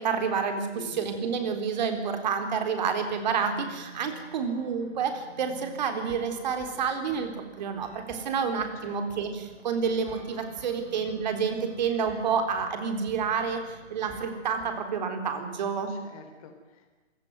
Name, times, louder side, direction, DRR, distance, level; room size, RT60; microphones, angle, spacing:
voice 1, 0.0-15.9, right 6 dB, 35° right, 6 dB, 4.0 m, -29 dB
sound 1, 3.1-15.0, right 2 dB, 10° right, 4.2 m, -49 dB
voice 2, 8.8-9.2 15.9-16.9, left 6 dB, 30° left, 5 dB, 4.5 m, -48 dB
27.0 x 17.0 x 9.5 m, 1.3 s
hypercardioid pair, 165°, 36 cm